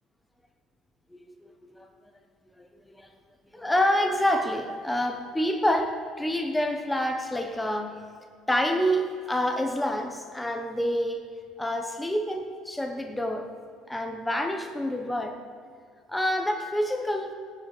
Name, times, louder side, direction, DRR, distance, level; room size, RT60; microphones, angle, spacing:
voice 1, 1.1-1.9 2.6-3.1 3.5-8.0 8.5-11.3 11.6-13.5 13.9-15.4 16.1-17.3, equal, 5° left, 4 dB, 1.0 m, -27 dB
15.5 x 9.7 x 6.6 m, 2.2 s
cardioid pair, 155°, 0 cm